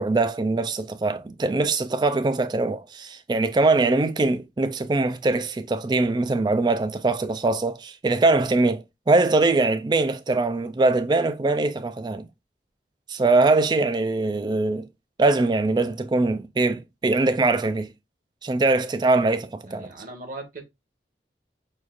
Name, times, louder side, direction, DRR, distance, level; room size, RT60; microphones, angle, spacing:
voice 1, 0.0-12.3 13.1-14.9 15.2-17.9 18.4-19.9, right 3 dB, 25° right, 0.3 m, -22 dB
voice 2, 19.7-20.6, right 2 dB, 50° right, 1.1 m, -38 dB
6.2 x 2.4 x 2.4 m
head